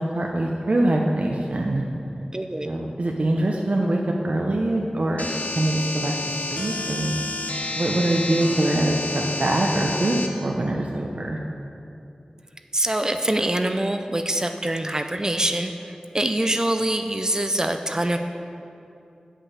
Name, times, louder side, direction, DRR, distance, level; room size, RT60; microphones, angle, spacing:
voice 1, 0.0-1.8 2.6-6.1 6.5-7.2 7.7-11.4, right 1 dB, 60° right, 0 dB, 0.7 m, -23 dB
voice 2, 2.3-2.8 12.7-18.2, right 1 dB, 25° right, 6 dB, 0.4 m, -24 dB
sound 1, 5.2-10.3, left 2 dB, 75° left, 0.8 m, -30 dB
8.4 x 5.5 x 7.1 m, 2.7 s
wide cardioid pair, 60°, 3 cm